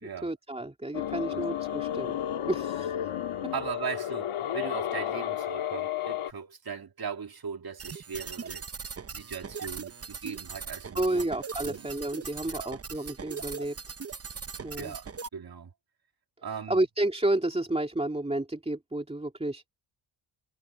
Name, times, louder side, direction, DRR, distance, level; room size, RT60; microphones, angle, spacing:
voice 1, 0.2-2.2 2.5-3.0 10.9-13.8 14.6-14.9 16.7-19.7, right 1 dB, 10° right, 3.2 m, -30 dB
sound 1, 0.9-6.3, left 10 dB, 75° left, 2.1 m, -32 dB
voice 2, 3.5-8.7 9.1-11.3 11.6-11.9 12.5-12.8 14.7-15.1 15.3-15.7 16.4-16.8, right 6 dB, 45° right, 2.5 m, -38 dB
sound 2, 7.8-15.3, right 5 dB, 30° right, 0.9 m, -40 dB
cardioid pair, 75°, 50 cm